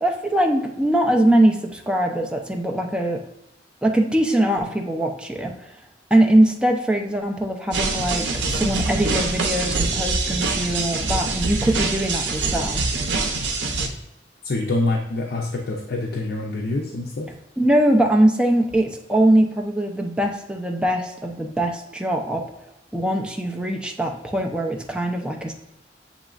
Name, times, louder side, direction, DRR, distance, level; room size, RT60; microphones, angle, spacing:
voice 1, 0.0-3.2 3.8-5.5 6.1-12.8 17.6-22.4 22.9-25.5, right 1 dB, 5° right, 1 dB, 0.4 m, -21 dB
sound 1, 7.7-13.9, right 3 dB, 90° right, 0.6 m, -24 dB
voice 2, 14.4-17.3, left 2 dB, 60° left, 0 dB, 0.5 m, -25 dB
7.2 x 3.0 x 2.4 m, 0.87 s
head